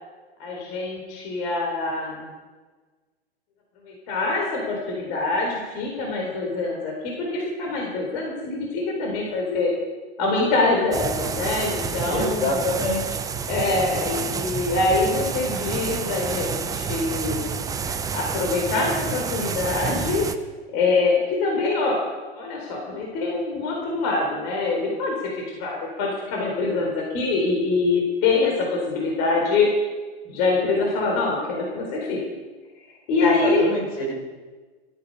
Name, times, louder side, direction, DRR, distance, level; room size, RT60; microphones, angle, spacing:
voice 1, 0.4-2.3 3.9-9.7 10.2-12.6 13.5-17.4 18.1-20.2 20.7-22.0 22.3-29.7 30.3-32.2 33.1-33.7, left 3 dB, 40° left, -1 dB, 4.2 m, -24 dB
sound 1, 10.9-20.3, right 6 dB, 10° right, 0.7 m, -29 dB
voice 2, 12.1-13.2 33.2-34.1, left 2 dB, 70° left, -1 dB, 6.7 m, -26 dB
16.5 x 13.0 x 5.5 m, 1.3 s
figure-of-eight pair, 105°, 32 cm